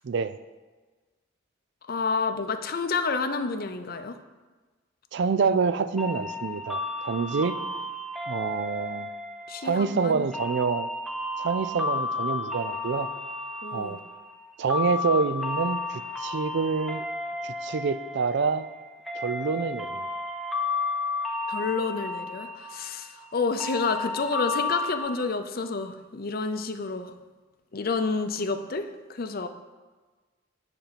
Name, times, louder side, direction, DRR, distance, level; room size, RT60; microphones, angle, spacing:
voice 1, 0.0-0.4 5.1-7.6 8.3-9.1 9.6-10.9 11.4-13.1 13.7-14.0 14.6-17.0 17.4-18.7 19.2-20.1, right 5 dB, 60° right, 13 dB, 0.4 m, -27 dB
voice 2, 1.9-4.2 9.5-10.3 13.6-14.0 21.5-27.1 27.7-29.5, left 4 dB, 50° left, 8 dB, 0.6 m, -29 dB
sound 1, 6.0-25.0, left 3 dB, ahead, 0.7 m, -33 dB
8.0 x 4.4 x 6.8 m, 1.3 s
head